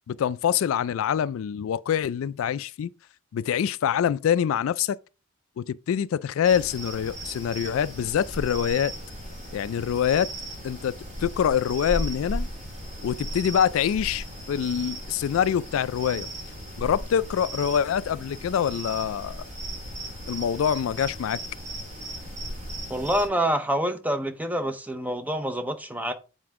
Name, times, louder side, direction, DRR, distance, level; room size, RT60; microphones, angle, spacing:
voice 1, 0.1-2.9 3.3-5.0 5.6-8.9 9.5-10.3 10.6-12.5 13.0-16.3 16.8-19.5 20.3-21.4, left 8 dB, 85° left, 0.3 m, -25 dB
sound 1, 6.4-23.3, right 1 dB, 35° right, 3.0 m, -36 dB
voice 2, 22.9-26.1, right 1 dB, 10° right, 0.6 m, -27 dB
7.8 x 4.4 x 3.6 m
head